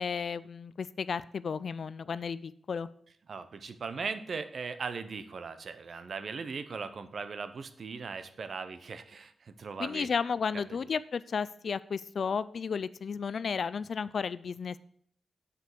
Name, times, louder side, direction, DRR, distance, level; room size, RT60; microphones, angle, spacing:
voice 1, 0.0-2.9 9.8-14.8, left 6 dB, 60° left, 17 dB, 0.4 m, -33 dB
voice 2, 3.3-10.1 10.7-10.8, right 5 dB, 55° right, 11 dB, 0.8 m, -39 dB
9.5 x 5.1 x 6.1 m, 0.64 s
wide cardioid pair, 120°, 0 cm